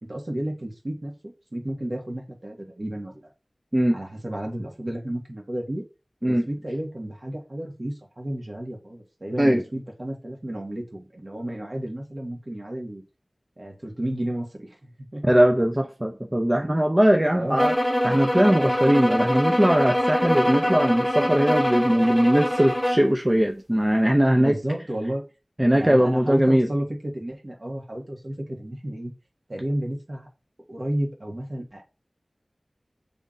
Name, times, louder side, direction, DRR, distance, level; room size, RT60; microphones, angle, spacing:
voice 1, 0.0-3.3 3.9-5.8 6.3-13.0 13.6-15.2 17.3-17.6 24.3-25.2 25.7-29.1 29.5-30.3 30.7-31.8, right 1 dB, 55° right, 1.7 m, -32 dB
voice 2, 15.2-17.8 18.0-24.6 25.6-26.7, equal, 20° right, 0.6 m, -20 dB
sound 1, 17.6-23.1, equal, 10° left, 0.9 m, -24 dB
7.2 x 3.5 x 3.8 m
wide cardioid pair, 50°, 0 cm